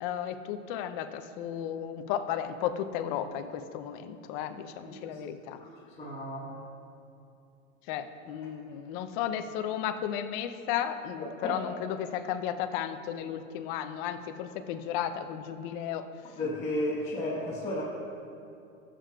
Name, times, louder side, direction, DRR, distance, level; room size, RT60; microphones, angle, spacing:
voice 1, 0.0-5.6 7.9-16.0, left 9 dB, 40° left, 9 dB, 0.5 m, -34 dB
voice 2, 4.9-5.2 5.6-5.7 6.0-6.6 11.4-11.6 16.4-17.8, left 1 dB, 15° left, -8 dB, 1.1 m, -33 dB
14.5 x 7.5 x 2.3 m, 2.6 s
hypercardioid pair, 130°, 40 cm